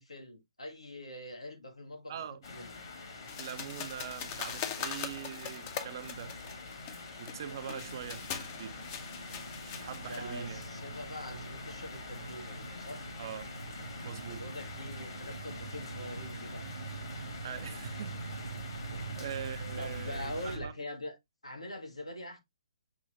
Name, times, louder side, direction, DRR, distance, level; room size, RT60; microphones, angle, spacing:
voice 1, 0.0-2.7 7.6-7.8 10.0-13.0 14.2-16.7 18.9-19.2 19.8-21.1 21.4-22.4, left 1 dB, 80° left, 1.3 m, -44 dB
voice 2, 2.1-2.4 3.4-6.4 7.2-8.8 9.6-10.6 13.2-13.6 14.0-14.5 17.4-18.8 19.2-20.7, right 9 dB, 40° right, 0.5 m, -43 dB
sound 1, 2.4-20.6, left 3 dB, 50° left, 1.5 m, -46 dB
sound 2, 3.3-10.6, left 8 dB, 30° left, 0.6 m, -42 dB
sound 3, 7.6-20.7, right 4 dB, 80° right, 0.7 m, -44 dB
6.2 x 3.1 x 2.4 m
figure-of-eight pair, 130°, 3 cm